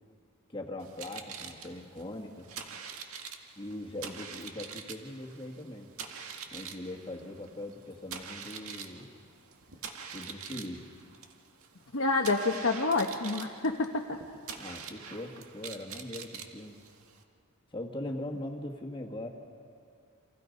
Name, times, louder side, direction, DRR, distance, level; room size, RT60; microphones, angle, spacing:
voice 1, 0.5-2.5 3.6-5.9 6.5-9.1 10.1-10.8 14.5-16.8 17.7-19.3, left 1 dB, 20° left, 0 dB, 1.9 m, -41 dB
sound 1, 0.8-17.2, right 6 dB, 75° right, 1.9 m, -45 dB
voice 2, 11.9-14.2, left 3 dB, 65° left, 0 dB, 1.2 m, -28 dB
29.5 x 27.0 x 5.4 m, 2.3 s
head